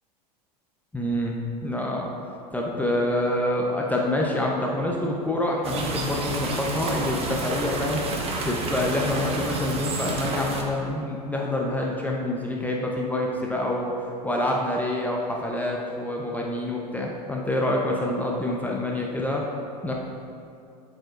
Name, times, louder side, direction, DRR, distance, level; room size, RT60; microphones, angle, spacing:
voice 1, 0.9-1.4 1.6-2.1 2.5-8.0 8.4-13.9 14.2-19.4 19.8-19.9, left 1 dB, 5° left, -2 dB, 0.8 m, -27 dB
sound 1, 5.6-10.6, right 2 dB, 30° right, 1.1 m, -29 dB
11.0 x 5.0 x 2.5 m, 2.5 s
figure-of-eight pair, 85°, 21 cm